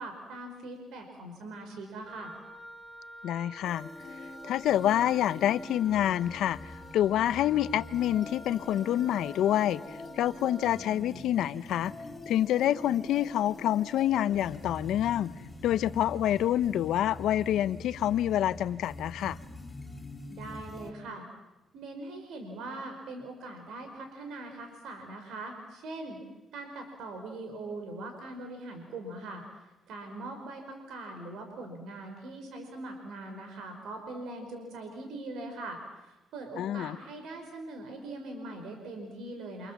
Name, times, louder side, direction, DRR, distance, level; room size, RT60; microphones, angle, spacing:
voice 1, 0.0-2.4 20.3-21.3 21.7-26.2 26.5-29.4 29.9-39.7, right 2 dB, 80° right, 5 dB, 4.8 m, -41 dB
Wind instrument woodwind instrument, 2.0-10.9, equal, 5° right, 3.3 m, -49 dB
voice 2, 3.2-3.9 4.4-9.8 10.1-11.9 12.3-15.3 15.6-19.4 36.6-37.0, left 11 dB, 80° left, 15 dB, 0.9 m, -27 dB
sound 1, 3.6-20.9, left 2 dB, 15° left, 4.4 m, -45 dB
29.0 x 27.0 x 7.3 m, 1.0 s
cardioid pair, 90°, 0 cm